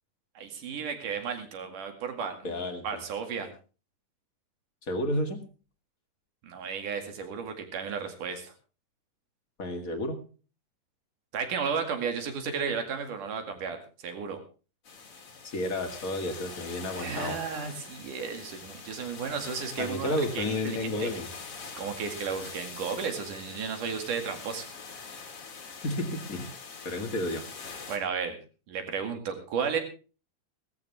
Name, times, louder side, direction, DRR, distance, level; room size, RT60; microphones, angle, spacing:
voice 1, 0.4-2.6 2.8-3.5 6.4-8.5 11.3-14.4 16.9-21.1 21.8-24.7 27.9-28.4 28.7-29.8, right 6 dB, 85° right, 6 dB, 3.7 m, -33 dB
voice 2, 2.4-3.0 4.9-5.4 9.6-10.2 15.4-17.3 19.8-21.3 25.8-26.5 26.8-27.4, left 1 dB, 30° left, 5 dB, 1.9 m, -31 dB
sound 1, 14.9-28.0, left 5 dB, 50° left, 3.1 m, -44 dB
17.5 x 14.5 x 3.4 m, 0.35 s
omnidirectional pair, 3.6 m